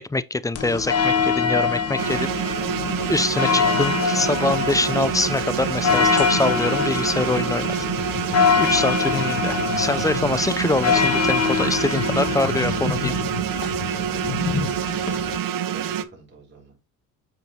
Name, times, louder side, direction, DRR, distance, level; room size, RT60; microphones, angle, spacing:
voice 1, 0.0-2.3 3.1-7.8 8.6-13.1, left 2 dB, 10° left, 0.4 m, -24 dB
sound 1, 0.5-15.4, left 6 dB, 40° left, 1.4 m, -24 dB
sound 2, 2.0-16.0, right 9 dB, 60° right, 0.8 m, -27 dB
voice 2, 3.6-4.2 14.3-14.8 15.2-16.8, right 2 dB, 30° right, 4.0 m, -46 dB
7.1 x 5.9 x 2.8 m
cardioid pair, 90°, 39 cm